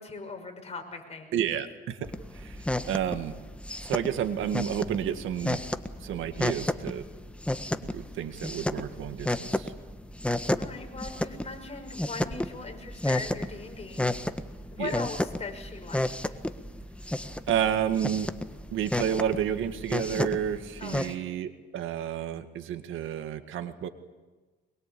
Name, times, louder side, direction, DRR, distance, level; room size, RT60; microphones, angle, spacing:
voice 1, 0.0-1.3 10.6-14.3 14.7-16.3 20.8-21.2, left 4 dB, 30° left, 4 dB, 6.0 m, -40 dB
voice 2, 1.3-3.3 3.8-5.6 6.0-7.1 7.8-9.7 14.8-14.9 17.5-18.3 18.7-23.9, right 9 dB, 85° right, 9 dB, 2.0 m, -31 dB
sound 1, 2.0-21.1, left 1 dB, 5° left, 1.5 m, -33 dB
23.5 x 22.5 x 8.7 m, 1.2 s
cardioid pair, 90°, 20 cm